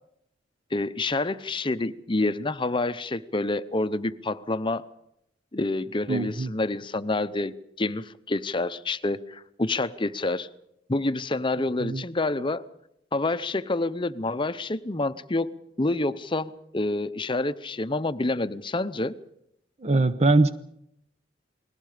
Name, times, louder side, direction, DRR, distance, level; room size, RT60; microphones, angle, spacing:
voice 1, 0.7-4.8 5.5-10.5 10.9-12.6 13.1-15.5 15.8-19.1, left 2 dB, 25° left, 14 dB, 0.7 m, -28 dB
voice 2, 6.1-6.5 11.8-12.0 19.8-20.5, right 2 dB, 35° right, 11 dB, 0.8 m, -22 dB
29.5 x 20.5 x 5.0 m, 0.79 s
head